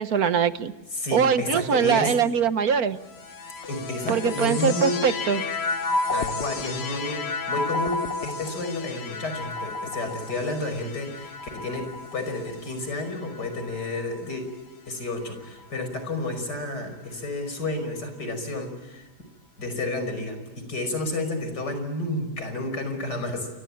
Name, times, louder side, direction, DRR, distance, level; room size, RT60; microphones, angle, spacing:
voice 1, 0.0-0.7 1.1-3.0 4.1-5.4, right 7 dB, 65° right, 11 dB, 1.6 m, -22 dB
voice 2, 0.9-2.1 3.7-5.0 6.1-14.4 14.9-19.0 19.6-23.5, left 2 dB, 85° left, 8 dB, 6.0 m, -31 dB
sound 1, 3.0-14.5 15.3-16.0, left 3 dB, 45° left, 1.2 m, -32 dB
28.5 x 24.5 x 8.6 m, 1.2 s
omnidirectional pair, 1.7 m